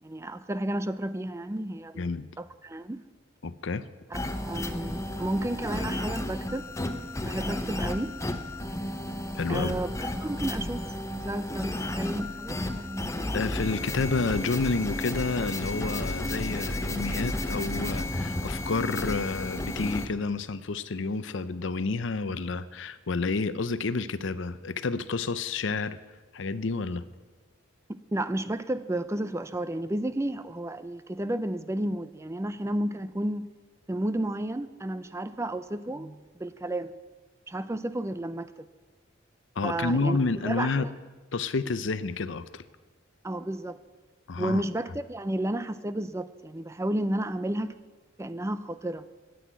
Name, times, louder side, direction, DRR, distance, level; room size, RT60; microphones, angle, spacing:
voice 1, 0.0-2.1 2.4-3.0 4.1-6.7 7.2-8.1 9.5-13.2 28.1-33.5 33.9-36.9 37.5-38.7 39.6-40.2 40.4-40.9 43.2-43.8 44.4-47.7 48.2-49.1, right 1 dB, 15° right, 0.4 m, -32 dB
voice 2, 3.4-3.8 9.4-9.8 13.3-26.0 26.3-27.0 39.6-40.9 41.3-42.7 44.3-44.6, left 3 dB, 65° left, 0.6 m, -29 dB
sound 1, 4.1-20.1, left 1 dB, 15° left, 0.7 m, -32 dB
10.0 x 9.3 x 9.3 m
head